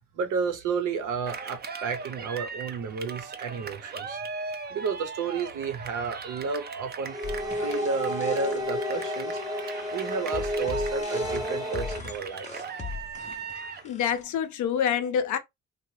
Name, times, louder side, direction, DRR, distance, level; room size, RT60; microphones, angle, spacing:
voice 1, 0.1-4.2 4.7-7.1 7.6-9.4 9.9-12.6, right 5 dB, 85° right, 0.8 m, -32 dB
Cheering, 1.3-13.9, right 5 dB, 35° right, 0.5 m, -39 dB
sound 1, 7.1-12.0, left 1 dB, 15° right, 0.8 m, -31 dB
sound 2, 7.2-14.2, left 5 dB, 25° left, 0.6 m, -41 dB
voice 2, 13.8-15.4, left 8 dB, 75° left, 0.6 m, -27 dB
2.8 x 2.2 x 3.1 m
cardioid pair, 90°, 30 cm